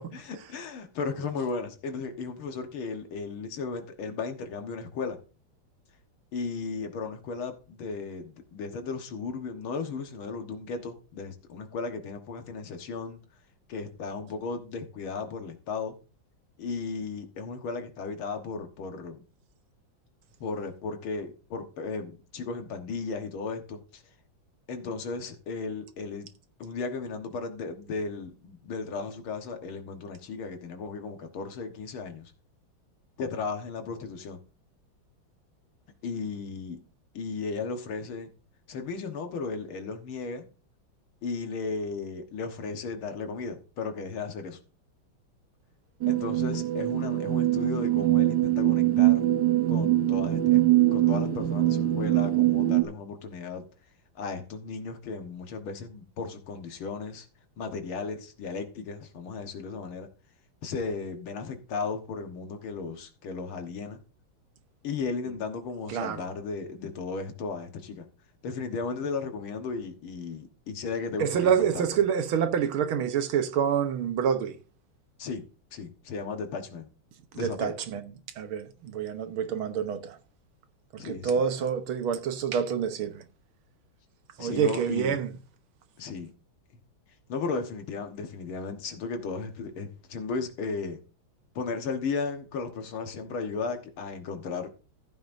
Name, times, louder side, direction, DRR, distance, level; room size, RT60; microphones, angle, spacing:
voice 1, 0.1-5.2 6.3-13.2 13.7-16.0 16.6-19.2 20.4-24.0 24.7-26.3 26.6-32.3 33.2-34.4 36.0-36.8 37.1-38.3 38.7-40.5 41.2-44.6 46.1-49.3 49.7-50.6 50.9-53.7 54.2-57.3 57.6-60.1 60.6-64.0 64.8-68.1 68.4-71.9 75.2-75.4 75.7-76.9 77.3-77.7 81.0-81.4 84.4-85.2 86.0-86.3 87.3-91.0 91.6-94.7, left 4 dB, 85° left, 2.2 m, -35 dB
sound 1, 46.0-52.8, right 14 dB, 60° right, 1.3 m, -23 dB
voice 2, 65.9-66.2 71.2-74.6 77.3-78.0 78.4-80.2 80.9-83.2 84.4-85.3, right 8 dB, 85° right, 1.9 m, -27 dB
14.5 x 9.3 x 2.6 m
omnidirectional pair, 2.3 m